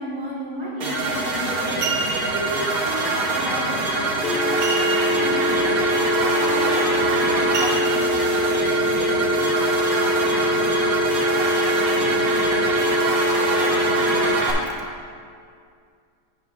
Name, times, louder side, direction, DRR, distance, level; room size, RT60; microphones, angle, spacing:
voice 1, 0.0-1.9 2.3-4.6 5.1-8.1, equal, 20° right, -6 dB, 1.5 m, -33 dB
sound 1, 0.8-14.5, right 2 dB, 70° right, 1.5 m, -24 dB
sound 2, 0.9-1.2 1.6-2.4 4.6-5.3 5.6-5.7 6.2-6.4 7.5-8.3 8.9-9.0, right 3 dB, 50° right, 0.9 m, -29 dB
sound 3, 4.2-14.2, equal, 85° left, 1.2 m, -23 dB
voice 2, 11.9-12.4 12.7-13.3 13.8-14.3 14.6-14.8, right 2 dB, 85° right, 0 dB, 1.4 m, -46 dB
9.5 x 8.3 x 2.5 m, 2.2 s
omnidirectional pair, 1.6 m